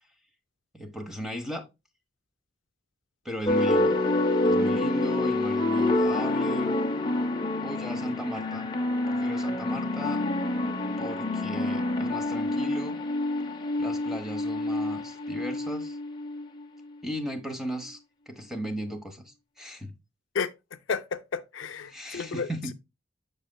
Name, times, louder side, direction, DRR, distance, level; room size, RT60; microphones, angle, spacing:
voice 1, 0.7-1.6 3.2-4.0 4.4-6.7 7.6-8.7 9.1-10.2 11.0-13.0 13.8-16.0 17.0-18.0 18.3-19.9 21.9-22.7, equal, ahead, 1.0 m, -36 dB
sound 1, 3.5-16.8, left 2 dB, 25° left, 0.8 m, -27 dB
voice 2, 20.9-22.5, left 5 dB, 75° left, 0.5 m, -31 dB
6.6 x 6.3 x 2.2 m
head